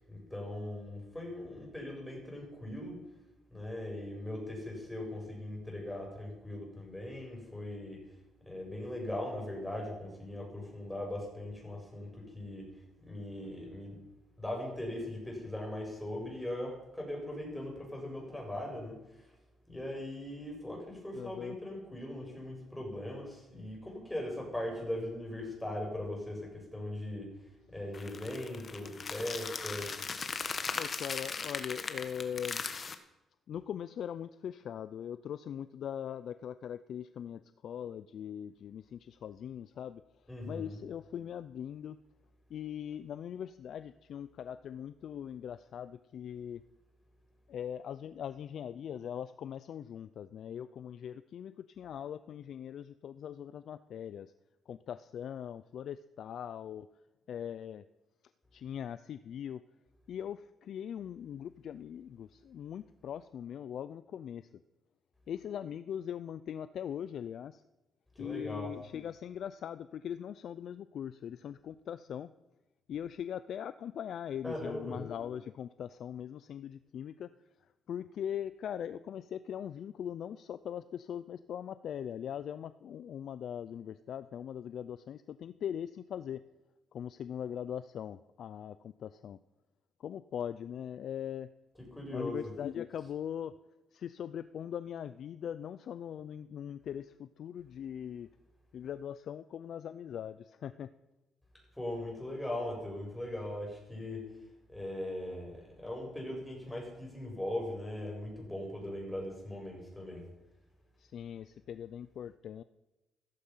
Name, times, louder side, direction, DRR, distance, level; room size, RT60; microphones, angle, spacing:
voice 1, 0.0-3.0 3.5-8.0 8.4-12.7 13.0-14.0 14.4-19.0 19.7-27.4 27.7-30.1 40.3-40.8 68.2-68.7 74.4-75.0 91.8-92.5 101.7-104.2 104.7-110.3, left 1 dB, 5° left, -1 dB, 7.6 m, -39 dB
voice 2, 21.1-21.6 30.7-32.6 33.5-40.0 40.5-42.0 42.5-46.6 47.5-54.3 54.7-56.9 57.3-57.8 58.5-59.6 60.1-64.5 65.3-67.6 68.2-72.3 72.9-77.3 77.9-86.4 86.9-89.4 90.0-91.5 92.1-93.5 93.9-98.3 98.7-100.9 111.0-112.6, left 9 dB, 65° left, 13 dB, 0.5 m, -41 dB
sound 1, 27.9-32.9, left 5 dB, 40° left, 1.5 m, -38 dB
16.0 x 14.0 x 5.7 m, 1.0 s
cardioid pair, 90°, 0 cm